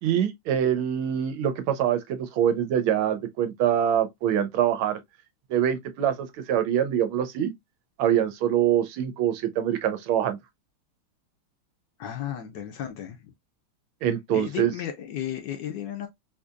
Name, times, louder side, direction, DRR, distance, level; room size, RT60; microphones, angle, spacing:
voice 1, 0.0-5.0 5.5-7.5 8.0-10.4 14.0-14.7, right 10 dB, 85° right, 1.5 m, -24 dB
voice 2, 12.0-13.3 14.3-16.1, left 10 dB, 70° left, 1.1 m, -34 dB
3.9 x 2.8 x 2.3 m
omnidirectional pair, 2.3 m